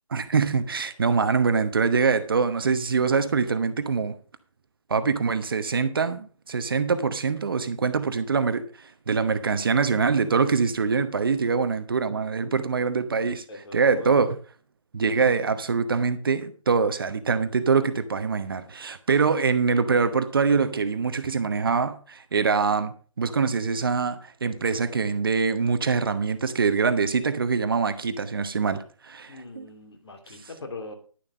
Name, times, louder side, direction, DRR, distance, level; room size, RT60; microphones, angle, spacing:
voice 1, 0.1-4.2 4.9-13.4 13.7-14.4 14.9-29.7, right 5 dB, 40° right, 1.0 m, -24 dB
voice 2, 13.5-14.1 29.3-30.9, left 2 dB, 50° left, 2.9 m, -41 dB
11.0 x 7.2 x 5.5 m
figure-of-eight pair, 165°, 17 cm